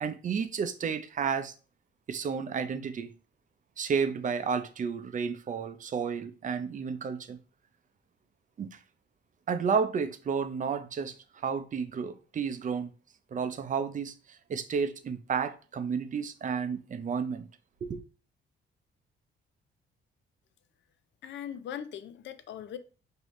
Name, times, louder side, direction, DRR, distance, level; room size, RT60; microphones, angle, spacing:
voice 1, 0.0-1.5 2.1-3.1 3.8-7.4 8.6-8.8 9.5-12.9 13.3-17.5 17.8-18.0, right 6 dB, 40° right, 0.6 m, -32 dB
voice 2, 21.2-22.8, left 9 dB, 65° left, 0.5 m, -40 dB
4.8 x 2.8 x 3.1 m
cardioid pair, 90°, 20 cm